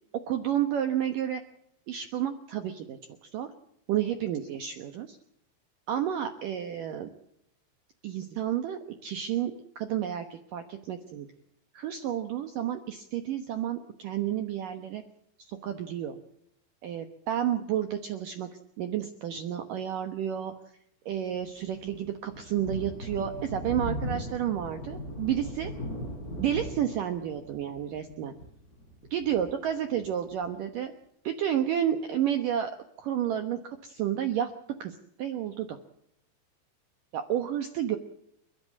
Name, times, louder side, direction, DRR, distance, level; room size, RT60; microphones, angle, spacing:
voice 1, 0.1-1.4 1.9-3.0 3.3-3.5 3.9-5.2 5.9-7.1 8.0-11.3 11.7-15.0 15.4-16.1 16.8-18.5 18.8-20.5 21.1-25.7 26.4-28.3 29.1-30.9 31.2-34.5 34.8-35.8 37.1-38.0, right 10 dB, 70° right, 8 dB, 2.1 m, -31 dB
Thunder, 21.3-30.4, equal, 20° left, 5.8 m, -38 dB
30.0 x 11.0 x 8.5 m, 0.75 s
omnidirectional pair, 5.4 m